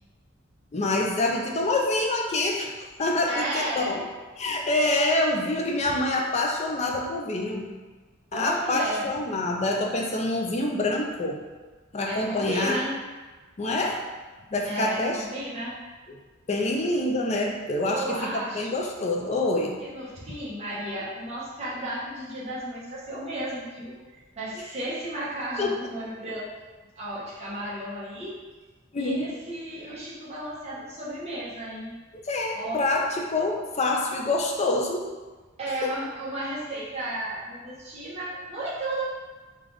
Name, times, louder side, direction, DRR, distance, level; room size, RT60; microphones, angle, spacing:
voice 1, 0.7-2.7 3.0-4.0 4.4-7.7 8.3-11.4 11.9-12.8 13.6-14.0 14.5-15.2 16.5-19.8 25.6-25.7 28.9-29.3 32.2-35.1 35.8-35.9, left 2 dB, 35° left, 0 dB, 0.4 m, -26 dB
voice 2, 3.3-3.9 8.3-9.1 12.0-13.0 14.6-15.8 17.9-18.7 19.8-26.7 27.0-28.4 29.0-32.0 32.5-32.8 35.6-39.0, right 1 dB, 30° right, -8 dB, 0.9 m, -33 dB
3.3 x 2.4 x 3.8 m, 1.3 s
head